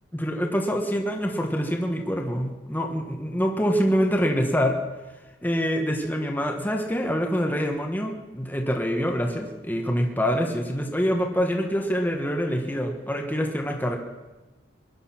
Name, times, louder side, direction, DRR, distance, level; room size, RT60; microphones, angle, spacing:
voice 1, 0.1-4.8 5.4-14.0, equal, 10° left, 2 dB, 1.3 m, -25 dB
21.5 x 11.0 x 6.0 m, 1.1 s
head